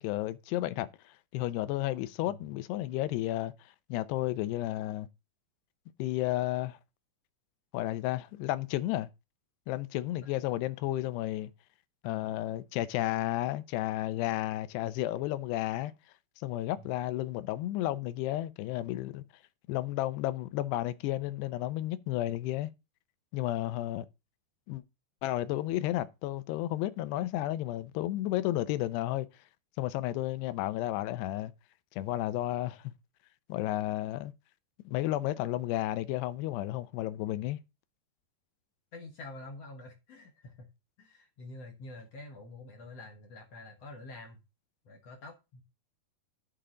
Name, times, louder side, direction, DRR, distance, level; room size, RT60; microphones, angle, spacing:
voice 1, 0.0-3.5 3.9-5.1 6.0-6.8 7.7-9.1 9.7-11.5 12.0-15.9 16.4-19.2 19.7-22.7 23.3-24.1 24.7-24.8 25.2-29.3 29.8-31.5 32.0-32.9 33.5-34.3 34.9-37.6, left 15 dB, 80° left, 2.8 m, -32 dB
voice 2, 12.0-12.4 16.7-16.9 38.9-40.7 41.0-44.4 44.8-45.6, left 2 dB, 65° left, 1.6 m, -47 dB
11.5 x 6.8 x 3.8 m
omnidirectional pair, 4.9 m